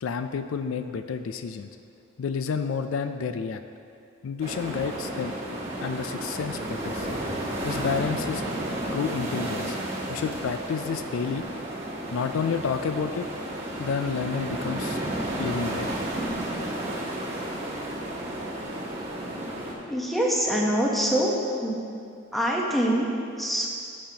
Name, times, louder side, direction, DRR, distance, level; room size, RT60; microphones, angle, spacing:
voice 1, 0.0-1.7 2.2-3.6 4.2-5.3 5.8-7.2 7.6-8.4 8.9-9.8 10.1-11.4 12.1-13.3 13.8-15.0 15.4-15.9, left 6 dB, 85° left, 9 dB, 0.4 m, -30 dB
sound 1, 4.4-19.7, right 1 dB, 30° right, 1.3 m, -32 dB
voice 2, 19.9-21.3 21.6-21.8 22.3-23.7, equal, ahead, -3 dB, 1.0 m, -25 dB
11.5 x 7.5 x 2.8 m, 2.5 s
head